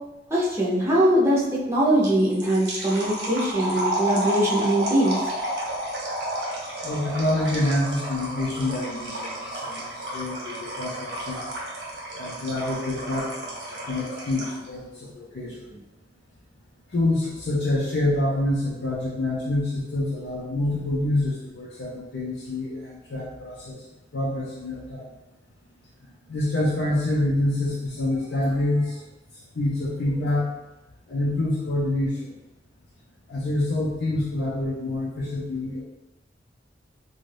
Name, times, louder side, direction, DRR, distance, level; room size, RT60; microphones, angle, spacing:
voice 1, 0.3-5.2, right 1 dB, 15° right, -7 dB, 0.6 m, -22 dB
sound 1, 2.0-14.7, right 1 dB, 75° right, 0.9 m, -31 dB
voice 2, 6.8-11.4 12.2-15.8 16.9-23.8 24.1-25.0 26.3-29.0 29.5-30.5 31.1-32.3 33.3-35.8, left 1 dB, 75° left, -7 dB, 0.5 m, -27 dB
2.6 x 2.2 x 3.2 m, 1.0 s
head